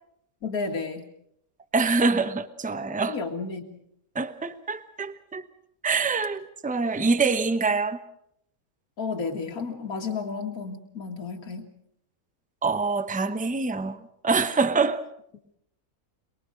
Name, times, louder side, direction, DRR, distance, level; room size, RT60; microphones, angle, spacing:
voice 1, 0.4-1.0 3.0-3.8 9.0-11.7, left 4 dB, 80° left, 2.4 m, -32 dB
voice 2, 1.7-3.2 4.1-5.5 5.8-8.0 12.6-15.0, right 4 dB, 5° right, 0.7 m, -25 dB
23.0 x 22.0 x 6.5 m
omnidirectional pair, 1.5 m